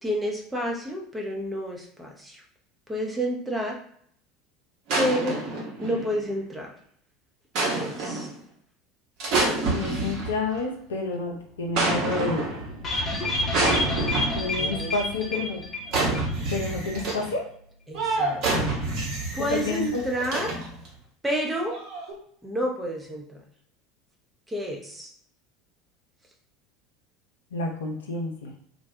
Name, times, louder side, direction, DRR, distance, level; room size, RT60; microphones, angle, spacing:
voice 1, 0.0-2.4 2.9-3.8 5.0-5.4 5.8-6.7 7.6-8.3 14.6-14.9 17.9-18.6 19.0-20.5 21.2-21.8 22.4-23.4 24.5-25.1, equal, 10° right, -1 dB, 0.6 m, -30 dB
sound 1, 4.9-6.3 7.6-8.4 9.2-10.6 11.8-12.7 13.5-14.6 15.9-17.3 17.9-20.9 21.7-22.1, right 2 dB, 50° right, 0.8 m, -27 dB
voice 2, 9.7-12.7 14.3-15.6 16.5-17.5 19.5-20.0 27.5-28.7, left 3 dB, 75° left, 0 dB, 0.5 m, -30 dB
sound 2, 10.9-17.8, left 1 dB, 80° right, 0.8 m, -38 dB
sound 3, 12.8-16.3 16.6-16.7 17.0-17.1, left 2 dB, 30° left, 0.7 m, -29 dB
2.2 x 2.0 x 2.7 m, 0.64 s
figure-of-eight pair, 70°, 0 cm